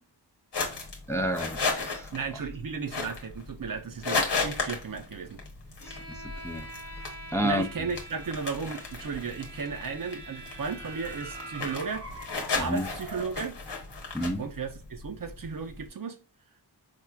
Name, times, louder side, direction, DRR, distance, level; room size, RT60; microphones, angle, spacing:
sound 1, 0.5-15.9, left 4 dB, 80° left, 1.0 m, -35 dB
voice 1, 1.1-2.1 5.8-6.6 7.3-7.6 12.6-12.9 14.1-14.4, equal, 5° left, 0.4 m, -30 dB
voice 2, 2.1-5.4 7.4-12.1 12.6-13.6 14.4-16.2, right 5 dB, 55° right, 0.6 m, -35 dB
Bowed string instrument, 5.8-12.1, right 1 dB, 40° left, 0.7 m, -46 dB
sound 2, 9.0-13.4, right 2 dB, 90° right, 1.3 m, -44 dB
4.4 x 2.4 x 2.2 m
wide cardioid pair, 65°, 41 cm